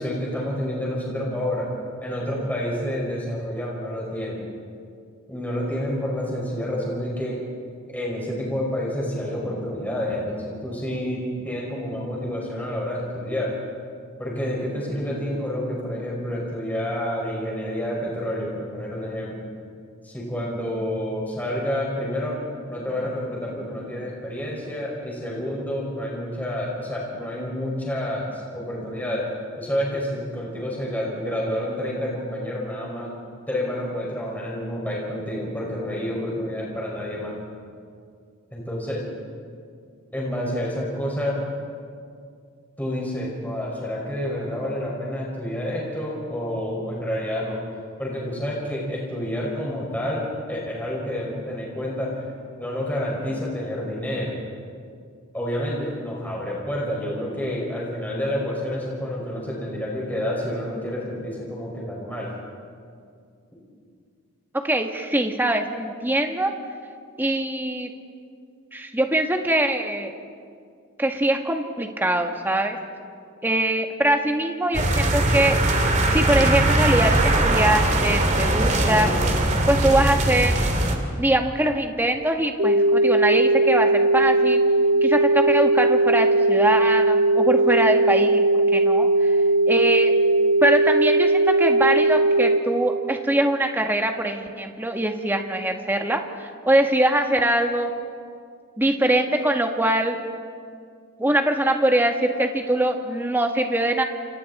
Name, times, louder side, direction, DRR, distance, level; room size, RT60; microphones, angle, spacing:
voice 1, 0.0-1.7 2.0-4.4 5.3-7.4 7.9-13.5 14.2-19.4 20.0-22.4 22.7-29.3 29.6-33.1 33.5-37.4 38.5-39.1 40.1-41.4 42.8-47.6 48.0-52.3 52.6-54.3 55.3-62.3, equal, 10° left, -4 dB, 5.6 m, -29 dB
voice 2, 64.6-66.5 67.2-67.9 68.7-70.1 71.0-72.8 73.4-75.6 76.1-79.1 79.7-80.5 81.2-84.6 85.0-88.4 88.7-89.3 89.7-90.1 90.6-97.9 98.8-100.2 101.2-104.0, right 1 dB, 10° right, 4 dB, 1.5 m, -22 dB
sound 1, 74.7-81.0, right 1 dB, 35° right, 2.3 m, -20 dB
sound 2, 82.6-92.6, right 2 dB, 75° right, 2.9 m, -19 dB
29.0 x 27.5 x 4.3 m, 2.3 s
head